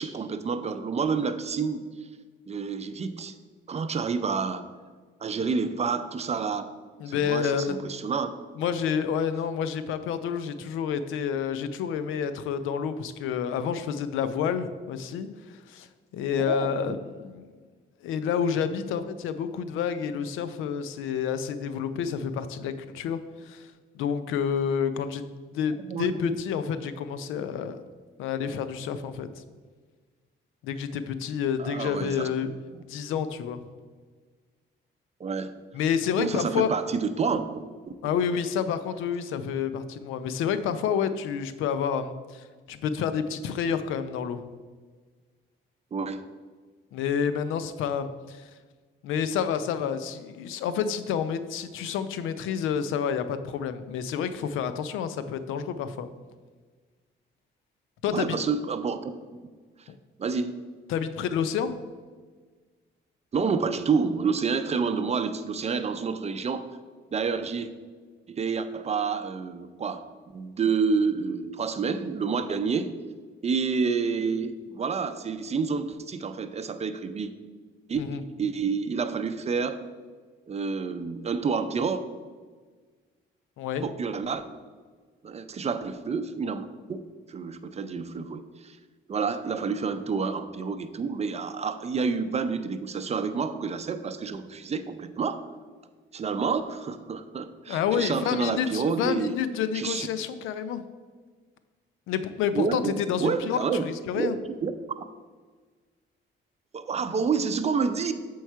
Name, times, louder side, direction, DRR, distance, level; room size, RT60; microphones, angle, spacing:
voice 1, 0.0-1.9 2.5-3.3 3.7-4.6 5.2-6.6 7.1-8.3 16.5-17.0 25.9-26.3 31.6-32.3 32.7-32.8 35.2-35.5 36.2-37.5 45.9-46.2 58.1-59.1 59.8-59.9 60.2-60.5 63.3-66.7 67.1-67.7 68.3-72.9 73.4-77.3 77.9-78.0 78.4-79.8 80.5-82.0 83.8-84.4 85.2-88.8 89.1-95.5 96.1-99.4 99.7-100.1 102.5-102.9 103.2-103.9 104.1-104.8 106.7-108.1, right 5 dB, 35° right, 9 dB, 0.5 m, -29 dB
voice 2, 7.0-7.9 8.6-15.9 16.1-17.5 18.0-23.2 23.5-23.7 23.9-25.2 25.5-27.8 28.2-29.3 30.6-32.5 32.9-33.6 35.7-36.7 38.0-44.4 46.9-48.4 49.0-56.1 58.0-58.4 60.9-61.7 78.0-78.2 83.6-83.8 97.7-100.8 102.1-104.4, left 7 dB, 90° left, 12 dB, 0.5 m, -29 dB
7.2 x 4.6 x 4.5 m, 1.5 s
cardioid pair, 90°, 20 cm